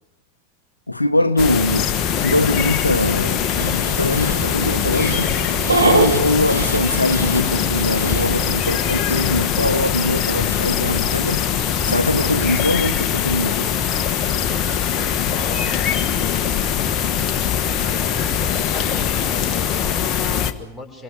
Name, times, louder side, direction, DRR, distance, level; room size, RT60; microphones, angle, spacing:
voice 1, 0.9-5.3 5.8-13.7, left 1 dB, 85° left, 0.9 m, -22 dB
sound 1, 1.4-20.5, left 8 dB, 30° left, 1.5 m, -22 dB
Dog, 3.6-8.6, right 3 dB, 80° right, 3.5 m, -24 dB
voice 2, 15.2-15.9 17.9-21.0, left 3 dB, 5° left, 6.3 m, -36 dB
28.5 x 23.0 x 6.8 m
figure-of-eight pair, 90°, 0 cm